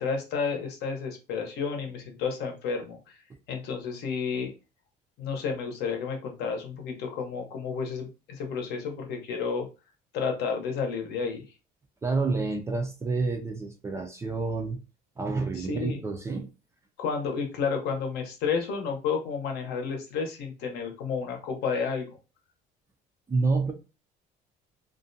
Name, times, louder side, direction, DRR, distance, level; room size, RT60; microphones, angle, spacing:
voice 1, 0.0-3.2 3.5-4.5 5.2-9.7 10.1-11.4 15.6-16.0 17.0-22.1, left 5 dB, 65° left, 0.8 m, -31 dB
voice 2, 12.0-14.8 15.2-16.5 23.3-23.7, right 3 dB, 15° right, 0.3 m, -28 dB
2.4 x 2.2 x 2.6 m
cardioid pair, 150°, 18 cm